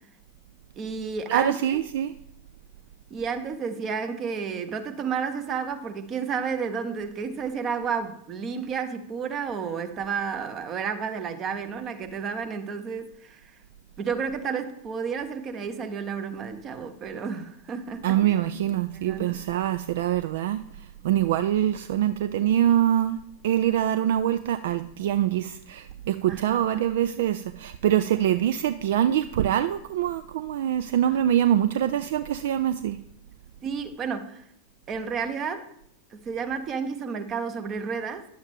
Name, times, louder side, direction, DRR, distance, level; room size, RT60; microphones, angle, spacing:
voice 1, 0.8-1.8 3.1-13.4 14.0-18.4 19.0-19.4 26.3-26.6 31.1-31.2 33.6-34.4 34.9-35.7 36.1-38.3, right 6 dB, 30° right, 8 dB, 0.9 m, -31 dB
voice 2, 1.3-2.1 18.0-20.6 21.0-23.2 23.4-33.0, right 11 dB, 55° right, 12 dB, 0.3 m, -24 dB
10.0 x 7.0 x 3.5 m, 0.73 s
figure-of-eight pair, 90°, 0 cm